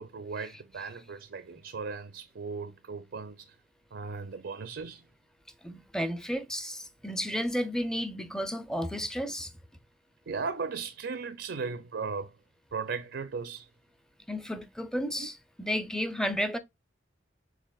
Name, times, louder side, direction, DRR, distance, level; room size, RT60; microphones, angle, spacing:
voice 1, 0.0-3.5 3.9-5.0 10.3-12.3 12.7-13.7 15.2-15.3, right 5 dB, 70° right, 0.5 m, -37 dB
voice 2, 5.6-9.5 14.3-16.6, equal, 5° left, 0.5 m, -32 dB
6.6 x 3.2 x 2.3 m
head